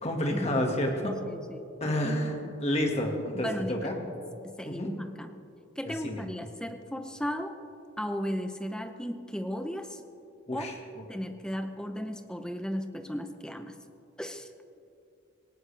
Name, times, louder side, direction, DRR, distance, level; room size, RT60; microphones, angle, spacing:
voice 1, 0.0-1.1 1.8-4.0 4.6-4.9 6.0-6.3 10.5-10.8, left 1 dB, 35° left, 1 dB, 1.9 m, -29 dB
voice 2, 1.0-2.0 3.3-3.8 4.4-5.3 5.8-7.6 8.0-10.0 10.5-10.7 11.1-13.7 14.2-14.5, equal, 5° left, 7 dB, 0.7 m, -35 dB
18.5 x 18.0 x 3.4 m, 2.5 s
head